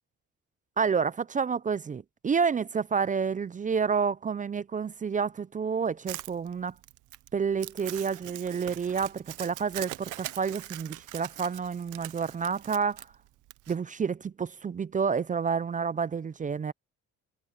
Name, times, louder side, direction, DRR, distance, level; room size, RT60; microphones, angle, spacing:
voice 1, 0.8-6.7 7.3-13.1 13.7-16.7, right 6 dB, 25° right, 0.4 m, -29 dB
Crumpling crinkling, 6.1-13.7, right 16 dB, 85° right, 0.8 m, -42 dB
cardioid pair, 90°, 30 cm